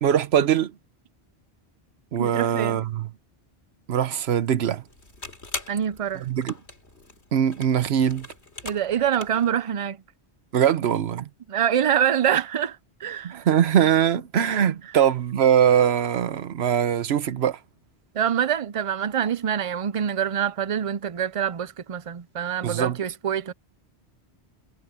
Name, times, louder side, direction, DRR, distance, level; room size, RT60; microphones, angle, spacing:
voice 1, 0.0-0.7 2.1-3.1 3.9-4.8 6.3-6.5 7.3-8.3 10.5-11.3 13.2-17.6 22.6-23.0, right 9 dB, 75° right, 1.1 m, -22 dB
voice 2, 2.2-2.9 5.7-6.3 8.6-10.0 11.5-13.5 18.1-23.5, right 9 dB, 45° right, 0.5 m, -25 dB
sound 1, 4.9-9.5, left 2 dB, 85° left, 3.7 m, -40 dB
omnidirectional pair, 1.1 m